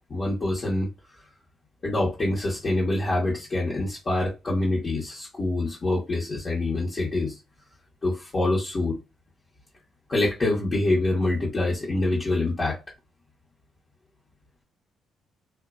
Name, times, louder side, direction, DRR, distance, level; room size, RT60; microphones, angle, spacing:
voice 1, 0.1-0.9 1.8-7.3 8.0-9.0 10.1-12.8, left 2 dB, 40° left, 1.0 m, -25 dB
2.5 x 2.1 x 2.3 m
cardioid pair, 90°, 0 cm